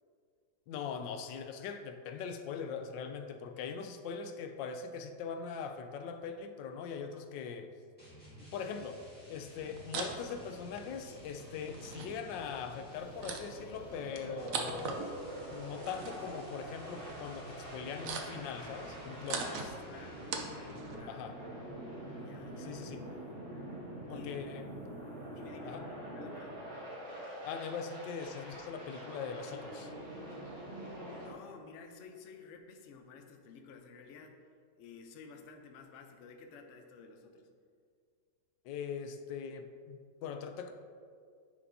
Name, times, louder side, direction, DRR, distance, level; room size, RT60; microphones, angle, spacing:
voice 1, 0.7-7.7 8.4-9.0 9.3-15.0 15.5-19.7 21.1-21.4 22.6-23.0 24.1-24.7 25.7-25.8 27.4-29.9 38.6-40.7, left 6 dB, 85° left, 7 dB, 1.3 m, -41 dB
sound 1, 8.0-21.1, right 1 dB, 5° left, 1.6 m, -55 dB
sound 2, 9.5-21.0, right 4 dB, 65° right, 0.9 m, -43 dB
sound 3, 13.0-31.3, right 1 dB, 40° right, 1.8 m, -45 dB
voice 2, 19.3-20.2 20.9-21.6 22.1-22.8 24.1-24.5 25.1-25.8 26.1-26.6 31.1-34.4 34.8-37.5, left 5 dB, 65° left, 4 dB, 0.7 m, -52 dB
9.7 x 5.2 x 2.7 m, 2.1 s
omnidirectional pair, 1.9 m